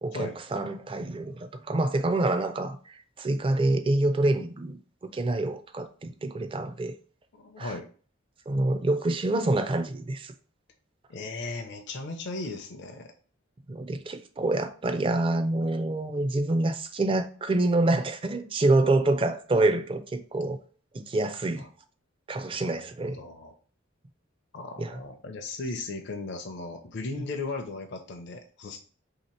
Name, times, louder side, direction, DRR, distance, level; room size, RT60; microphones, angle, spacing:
voice 1, 0.0-6.9 7.6-7.8 8.5-10.3 13.7-20.6 20.9-21.6 22.3-23.2 24.8-25.0, right 2 dB, 25° right, 0.4 m, -27 dB
voice 2, 7.3-7.9 11.1-13.1 21.6-21.7 22.5-22.8 23.2-23.5 24.5-28.8, left 3 dB, 60° left, 0.5 m, -37 dB
3.2 x 2.9 x 4.3 m
head